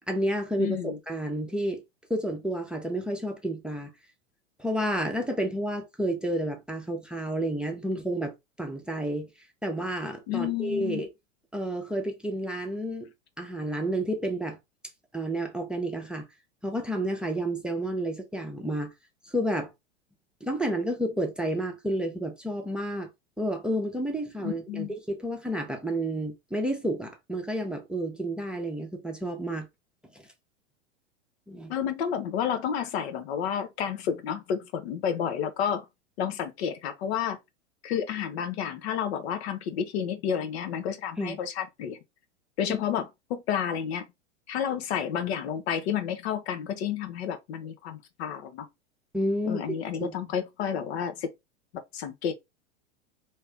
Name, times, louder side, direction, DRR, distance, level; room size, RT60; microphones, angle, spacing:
voice 1, 0.1-1.8 2.1-3.9 4.6-9.3 9.6-11.1 11.5-13.1 13.4-14.6 15.1-16.3 16.6-18.9 19.2-19.7 20.4-23.1 23.4-29.7 30.1-30.2 31.5-31.7 41.2-41.4 42.7-42.8 49.1-49.7 50.0-50.2, right 1 dB, ahead, 0.8 m, -30 dB
voice 2, 0.6-1.0 10.3-11.0 24.4-24.9 31.7-35.9 36.2-37.4 37.8-42.0 42.6-44.1 44.5-48.7 49.5-51.3 51.9-52.3, left 8 dB, 60° left, 0.8 m, -30 dB
3.3 x 2.8 x 3.4 m
hypercardioid pair, 100°, 37 cm